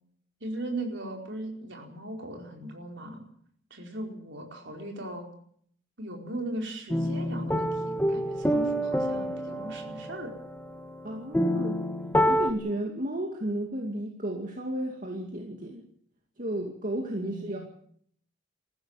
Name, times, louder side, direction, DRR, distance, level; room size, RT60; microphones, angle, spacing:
voice 1, 0.4-3.2 3.7-5.3 6.0-10.3 16.9-17.6, right 1 dB, 60° right, 2 dB, 4.8 m, -38 dB
sound 1, 6.9-12.5, equal, 10° left, 1.6 m, -28 dB
voice 2, 11.0-11.8 12.3-15.8 16.4-17.6, right 1 dB, 40° right, 1 dB, 2.3 m, -33 dB
20.5 x 15.0 x 9.0 m, 0.66 s
head